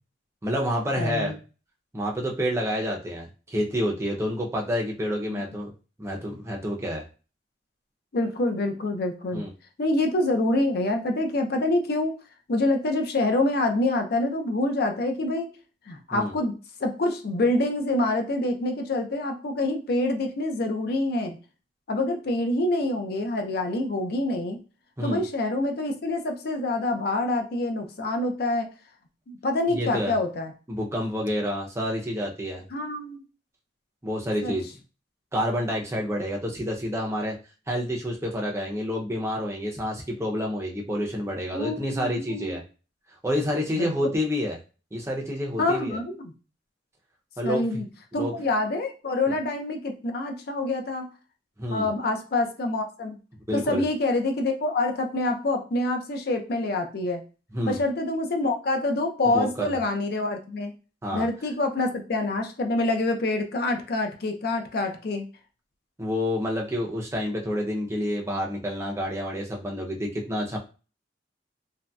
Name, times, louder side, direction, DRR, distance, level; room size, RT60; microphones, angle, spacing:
voice 1, 0.4-1.3 1.9-5.7 6.0-7.0 9.3-9.5 16.1-16.3 25.0-25.2 29.7-30.1 30.7-32.6 34.0-34.7 35.3-37.4 37.7-42.6 43.2-44.6 44.9-46.0 47.4-47.6 48.2-48.3 49.3-49.4 51.6-51.9 53.5-53.8 57.5-57.8 59.3-59.8 61.0-61.3 66.0-70.6, equal, 15° right, -1 dB, 0.5 m, -28 dB
voice 2, 1.0-1.3 5.3-5.4 8.1-9.4 9.8-12.2 12.5-15.5 15.9-16.5 16.8-21.4 21.9-24.6 25.0-28.7 29.3-30.5 32.7-33.2 34.4-34.5 41.5-42.6 43.7-44.1 45.6-46.3 47.4-47.9 48.1-51.1 51.7-53.2 53.5-57.2 57.6-60.7 61.1-65.3, left 2 dB, 55° left, 5 dB, 0.5 m, -26 dB
3.0 x 2.6 x 2.2 m, 0.34 s
head